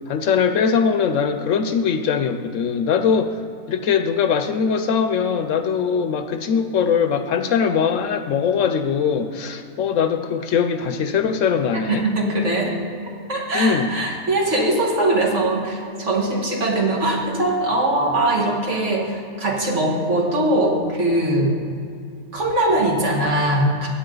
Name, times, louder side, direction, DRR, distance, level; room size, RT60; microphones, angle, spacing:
voice 1, 0.1-3.4 3.7-12.0 13.5-14.0, left 6 dB, 75° left, 8 dB, 1.0 m, -21 dB
voice 2, 11.9-12.8 13.3-21.5 22.3-23.9, right 1 dB, 60° right, -1 dB, 2.0 m, -21 dB
16.0 x 8.8 x 3.9 m, 2.5 s
omnidirectional pair, 1.4 m